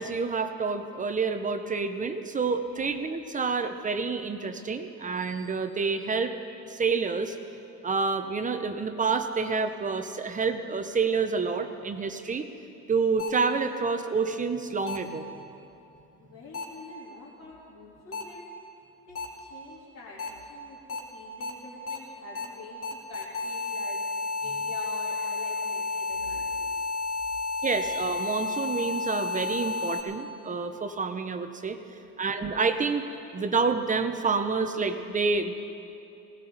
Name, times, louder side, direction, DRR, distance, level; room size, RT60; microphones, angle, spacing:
voice 1, 0.0-6.3 6.7-7.4 7.8-12.5 12.9-15.3 27.6-31.8 32.2-33.0 33.3-35.6, right 4 dB, 25° right, 8 dB, 0.7 m, -28 dB
sound 1, 13.2-13.3 14.9-15.0 16.5-16.6 18.1-18.2 19.2-19.3 20.2-20.3 20.9-21.0 21.4-21.5 21.9-22.0 22.4-22.5 22.8-30.0, left 4 dB, 45° left, 2.3 m, -31 dB
voice 2, 16.2-18.4 19.1-24.0 24.4-26.7 31.9-32.3, left 3 dB, 60° left, -10 dB, 3.7 m, -46 dB
19.5 x 18.0 x 4.0 m, 2.8 s
cardioid pair, 150°, 32 cm